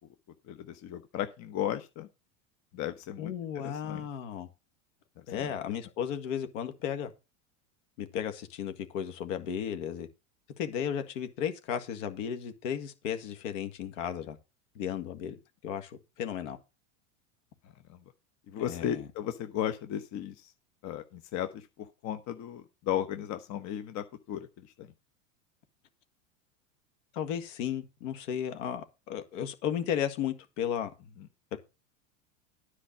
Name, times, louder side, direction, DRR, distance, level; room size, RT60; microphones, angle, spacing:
voice 1, 0.5-2.1 2.7-3.3 3.6-4.0 5.3-5.5 17.9-18.0 18.5-20.5 20.8-24.9, left 11 dB, 45° left, 1.0 m, -35 dB
voice 2, 3.2-4.5 5.3-7.1 8.0-10.1 10.6-14.4 14.8-16.6 18.6-19.1 27.1-30.9 31.5-31.6, left 9 dB, 70° left, 1.9 m, -34 dB
10.0 x 4.8 x 7.3 m
hypercardioid pair, 100°, 40 cm